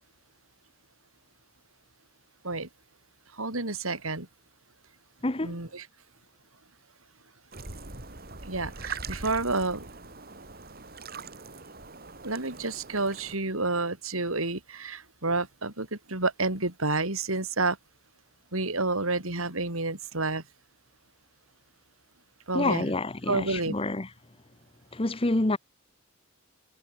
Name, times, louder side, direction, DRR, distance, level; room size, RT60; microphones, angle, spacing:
voice 1, 3.3-4.3 5.4-5.9 8.4-9.9 12.2-17.8 18.5-20.4 22.5-22.9 23.3-23.7, right 3 dB, 85° right, 5.0 m, -29 dB
voice 2, 5.2-5.5 22.5-24.1 24.9-25.6, left 2 dB, 25° left, 1.0 m, -27 dB
sound 1, 7.5-13.4, right 4 dB, 45° right, 4.6 m, -42 dB
head